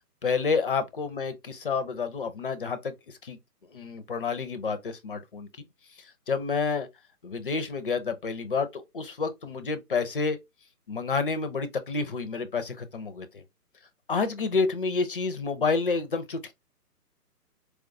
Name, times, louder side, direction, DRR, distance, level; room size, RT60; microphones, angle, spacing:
voice 1, 0.2-3.4 3.7-5.5 6.0-6.9 7.2-10.4 10.9-13.4 14.1-16.5, left 4 dB, 35° left, 0.5 m, -29 dB
4.5 x 2.3 x 2.5 m
figure-of-eight pair, 145°, 48 cm